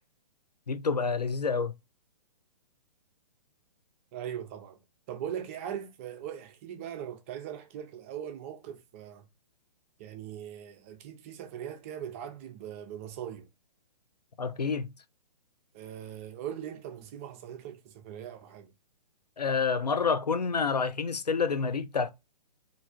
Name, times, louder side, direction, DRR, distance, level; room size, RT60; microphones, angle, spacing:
voice 1, 0.7-1.7 14.4-14.9 19.4-22.1, left 5 dB, 85° left, 0.4 m, -28 dB
voice 2, 4.1-4.8 5.1-9.3 10.0-13.5 15.7-18.7, right 10 dB, 20° right, 0.4 m, -40 dB
3.1 x 2.6 x 2.2 m
figure-of-eight pair, 125°, 20 cm